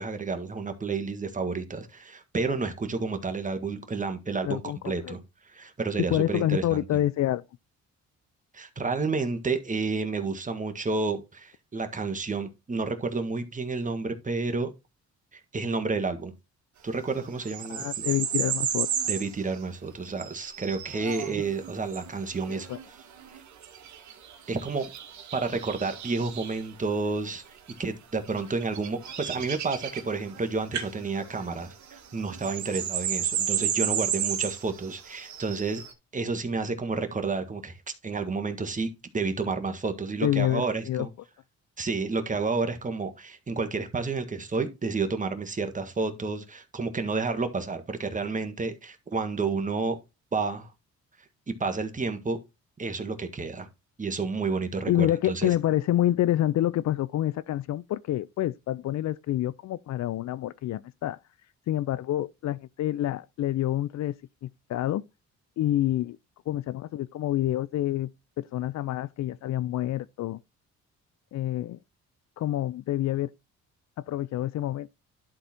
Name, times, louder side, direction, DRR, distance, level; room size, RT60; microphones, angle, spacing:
voice 1, 0.0-6.8 8.5-14.7 15.3-16.3 16.8-17.9 19.1-22.7 24.5-24.9 25.3-35.8 36.1-38.9 39.1-41.1 41.8-50.0 50.3-50.7 51.6-52.4 52.8-53.7 54.0-55.5, right 4 dB, 25° right, 1.7 m, -30 dB
voice 2, 4.4-5.2 6.1-7.4 17.7-18.9 22.5-22.8 40.2-41.1 54.9-61.2 61.7-64.1 64.4-65.0 65.6-66.2 66.5-68.1 68.4-70.4 71.3-71.8 72.4-73.3 74.1-74.9, left 13 dB, 65° left, 0.5 m, -27 dB
sound 1, 17.4-19.3 20.0-26.6 27.4-27.8 28.3-30.4 30.7-30.9 31.2-35.9, right 9 dB, 70° right, 1.6 m, -33 dB
11.5 x 4.0 x 4.4 m
cardioid pair, 90°, 30 cm